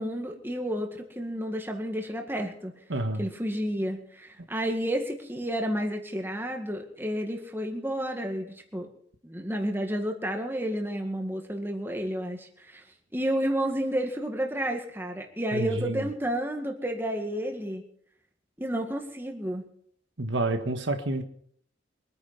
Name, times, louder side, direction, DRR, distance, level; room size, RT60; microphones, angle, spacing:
voice 1, 0.0-2.7 3.2-8.9 9.2-12.8 13.1-17.8 18.6-19.7, equal, 10° right, 3 dB, 1.9 m, -31 dB
voice 2, 2.9-3.2 15.5-16.1 20.2-21.2, right 2 dB, 70° right, 6 dB, 1.6 m, -29 dB
24.0 x 9.5 x 5.7 m, 0.65 s
head